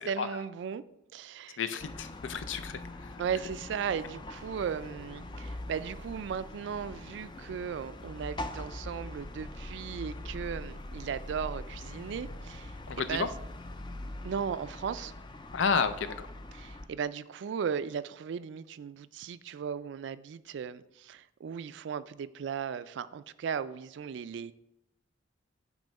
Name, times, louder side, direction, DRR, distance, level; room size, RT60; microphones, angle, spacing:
voice 1, 0.1-0.8 1.1-1.6 3.2-13.3 14.2-15.1 16.5-24.5, right 7 dB, 70° right, 0.3 m, -36 dB
voice 2, 1.6-3.1 12.9-13.3 15.5-16.3, left 5 dB, 85° left, 0.5 m, -31 dB
sound 1, 1.8-16.9, left 1 dB, 25° left, 0.4 m, -43 dB
9.0 x 3.1 x 5.2 m
head